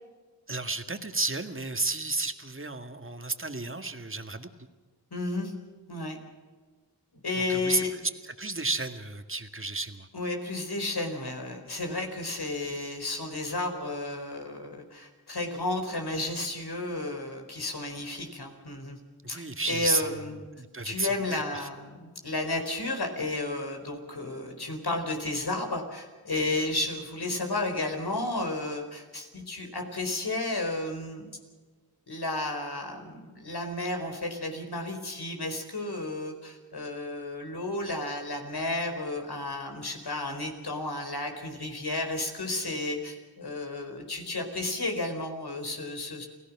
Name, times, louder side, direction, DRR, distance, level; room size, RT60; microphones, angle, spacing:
voice 1, 0.5-4.5 7.5-10.1 19.2-20.1 20.5-21.7, right 3 dB, 30° right, 6 dB, 2.0 m, -32 dB
voice 2, 5.1-5.5 5.9-6.2 7.2-8.0 10.1-19.0 19.3-20.4 20.8-31.3 32.1-46.3, left 2 dB, 70° left, 4 dB, 4.4 m, -32 dB
29.0 x 17.5 x 6.1 m, 1.4 s
cardioid pair, 40°, 39 cm